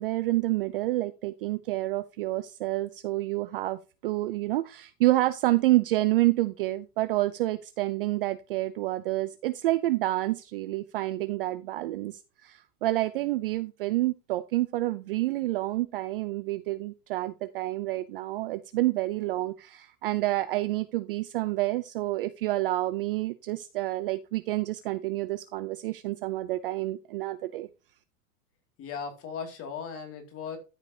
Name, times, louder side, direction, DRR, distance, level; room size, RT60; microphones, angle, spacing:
voice 1, 0.0-27.7, right 17 dB, 40° right, 13 dB, 0.4 m, -28 dB
voice 2, 28.8-30.6, left 6 dB, 30° left, 6 dB, 2.3 m, -37 dB
13.5 x 5.1 x 2.7 m, 0.29 s
supercardioid pair, 150°, 48 cm